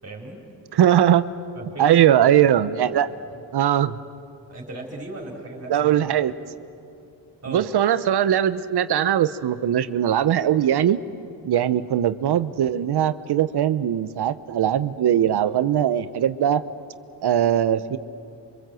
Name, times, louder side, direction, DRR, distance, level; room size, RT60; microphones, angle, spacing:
voice 1, 0.0-0.4 1.6-2.0 4.5-6.1 7.4-7.7 11.6-11.8, right 2 dB, 35° right, -2 dB, 4.3 m, -37 dB
voice 2, 0.7-1.3 1.8-3.1 3.5-4.0 5.7-6.3 7.5-11.0 11.4-16.6 17.2-18.0, right 10 dB, 65° right, 13 dB, 0.9 m, -20 dB
28.0 x 25.0 x 7.7 m, 2.5 s
cardioid pair, 85°, 42 cm